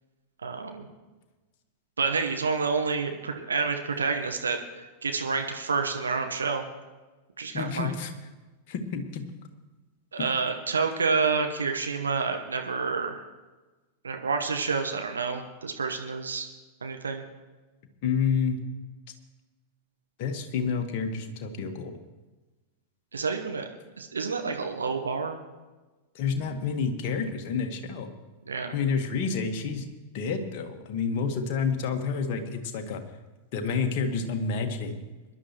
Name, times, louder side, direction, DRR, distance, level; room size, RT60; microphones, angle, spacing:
voice 1, 0.4-0.9 2.0-4.6 5.0-6.6 7.4-7.9 10.1-13.2 14.0-16.5 16.8-17.2 23.1-23.7 24.0-25.4 28.5-28.7, right 4 dB, 75° right, 4 dB, 1.2 m, -28 dB
voice 2, 7.5-8.1 8.7-9.2 10.2-10.3 18.0-18.6 20.2-22.0 26.1-28.1 28.7-29.8 30.1-33.0 33.5-35.0, left 5 dB, 45° left, 5 dB, 1.6 m, -29 dB
22.5 x 11.0 x 3.1 m, 1.2 s
figure-of-eight pair, 90°, 0 cm